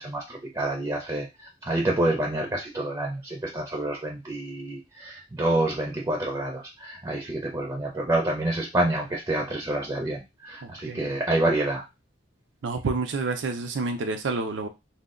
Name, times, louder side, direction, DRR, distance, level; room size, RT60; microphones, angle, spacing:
voice 1, 0.0-11.8, right 1 dB, 20° right, 0 dB, 0.5 m, -28 dB
voice 2, 10.6-11.1 12.6-14.7, right 3 dB, 75° right, 4 dB, 0.5 m, -29 dB
2.2 x 2.0 x 3.6 m, 0.23 s
head